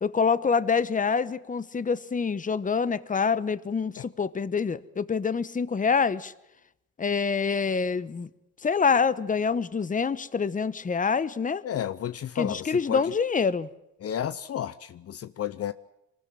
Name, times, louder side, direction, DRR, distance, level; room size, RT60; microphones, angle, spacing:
voice 1, 0.0-6.3 7.0-8.3 8.6-11.6 12.3-13.7, left 5 dB, 25° left, 1.0 m, -26 dB
voice 2, 11.6-13.0 14.0-15.7, left 10 dB, 50° left, 0.8 m, -32 dB
23.5 x 19.5 x 7.7 m
cardioid pair, 90°, 30 cm